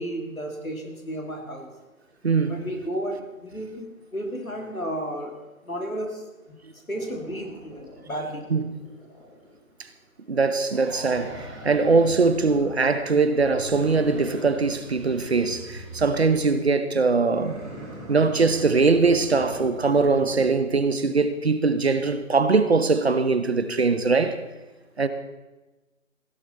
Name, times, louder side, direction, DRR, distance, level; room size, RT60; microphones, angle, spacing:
voice 1, 0.0-1.7 2.5-5.4 5.6-6.2 6.9-8.4, right 1 dB, 85° left, 3.2 m, -32 dB
voice 2, 2.2-2.6 8.5-8.7 10.3-17.6 18.1-24.4 25.0-25.1, right 4 dB, 50° right, 1.0 m, -21 dB
sound 1, 6.9-9.8 10.7-12.9 13.3-16.6 17.2-20.5, right 1 dB, ahead, 1.6 m, -41 dB
16.5 x 11.5 x 4.3 m
figure-of-eight pair, 155°, 41 cm